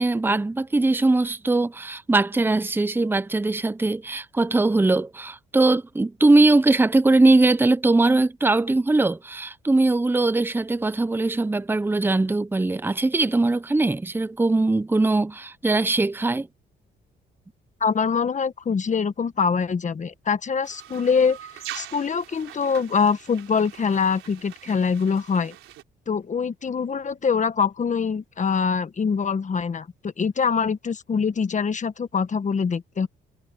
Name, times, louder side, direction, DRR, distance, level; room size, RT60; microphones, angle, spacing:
voice 1, 0.0-16.5, right 2 dB, 10° right, 0.7 m, -21 dB
voice 2, 17.8-21.4 21.7-25.5 26.1-33.1, left 6 dB, 40° left, 1.3 m, -24 dB
sound 1, 20.6-25.8, right 13 dB, 85° right, 4.1 m, -42 dB
cardioid pair, 90°, 20 cm